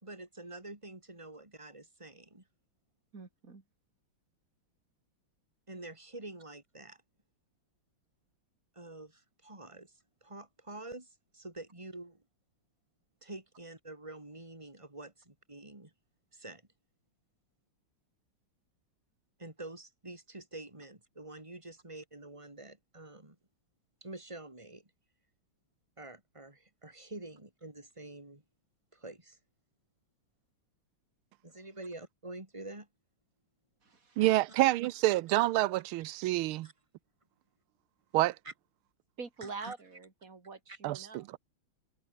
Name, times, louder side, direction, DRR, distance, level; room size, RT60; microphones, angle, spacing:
voice 1, 0.0-2.4 5.7-7.0 8.7-12.2 13.2-15.9 16.3-16.6 19.4-23.4 24.0-24.9 26.0-28.4 28.9-29.4 31.4-32.9 36.6-36.7 38.4-38.5 39.4-39.7 40.7-40.8, right 2 dB, 15° right, 4.4 m, -47 dB
voice 2, 3.1-3.6 33.8-34.2 39.2-41.4, right 4 dB, 40° right, 3.4 m, -45 dB
voice 3, 34.2-36.7 38.1-38.4 40.8-41.4, right 17 dB, 80° right, 1.5 m, -28 dB
omnidirectional pair, 2.3 m